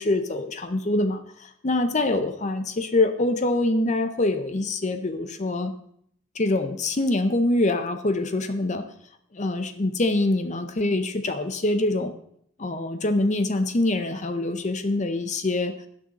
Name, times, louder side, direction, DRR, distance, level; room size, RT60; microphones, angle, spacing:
voice 1, 0.0-5.7 6.3-8.9 9.3-12.1 12.6-15.7, left 2 dB, 35° left, 9 dB, 0.7 m, -24 dB
17.0 x 6.3 x 4.1 m, 0.67 s
head